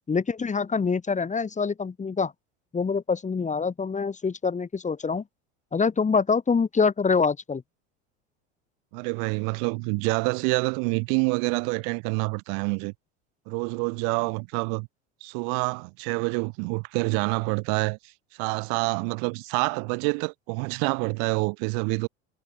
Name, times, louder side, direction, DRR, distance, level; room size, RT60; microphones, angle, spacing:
voice 1, 0.1-2.3 2.7-5.2 5.7-7.6, left 5 dB, 20° left, 2.8 m, -25 dB
voice 2, 8.9-12.9 13.5-14.9 15.2-18.0 18.4-22.1, right 40 dB or more, 65° right, 6.0 m, -27 dB
hypercardioid pair, 90°, 35 cm